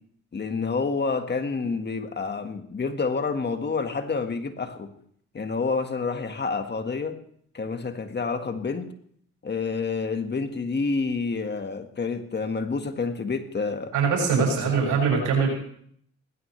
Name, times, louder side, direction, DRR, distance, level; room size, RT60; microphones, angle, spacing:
voice 1, 0.3-4.9 5.3-7.2 7.5-8.9 9.4-13.9, left 4 dB, 35° left, 7 dB, 1.7 m, -28 dB
voice 2, 13.9-15.6, right 5 dB, 90° right, 0 dB, 7.6 m, -22 dB
19.5 x 16.0 x 3.3 m, 0.64 s
cardioid pair, 90°, 30 cm